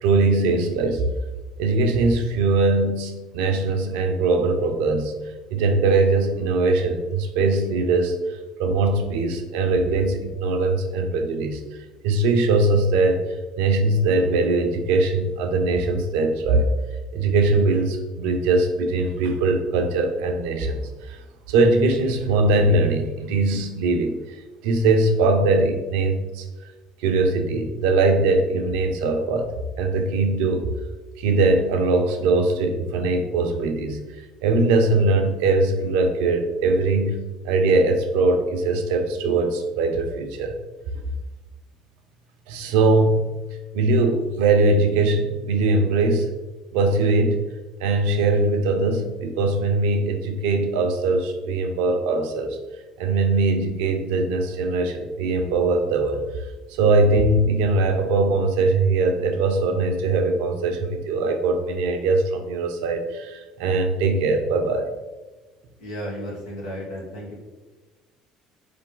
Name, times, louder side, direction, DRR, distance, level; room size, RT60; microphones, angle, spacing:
voice 1, 0.0-1.1 1.6-5.1 5.5-13.2 13.6-16.7 17.1-21.2 21.5-24.4 24.6-26.5 27.0-30.7 31.2-40.6 42.5-43.2 43.7-46.3 46.7-47.4 47.8-52.6 53.0-64.9, right 3 dB, 80° right, 5 dB, 0.6 m, -21 dB
voice 2, 65.8-67.4, equal, 85° left, -3 dB, 1.4 m, -33 dB
3.9 x 3.4 x 3.8 m, 1.2 s
hypercardioid pair, 70°, 2 cm